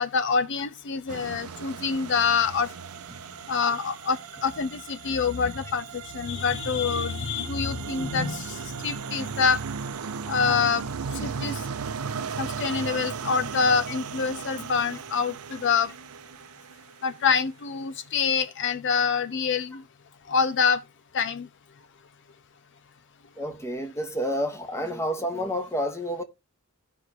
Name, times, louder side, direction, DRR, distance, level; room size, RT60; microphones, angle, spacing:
voice 1, 0.0-2.7 3.5-9.6 10.3-10.8 11.1-11.6 12.4-15.9 17.0-19.8 20.3-20.8 21.1-21.5, left 5 dB, 55° left, 0.5 m, -26 dB
sound 1, 1.1-17.2, right 6 dB, 85° right, 0.6 m, -36 dB
voice 2, 23.4-26.2, equal, 15° left, 1.2 m, -29 dB
15.5 x 5.4 x 2.9 m
head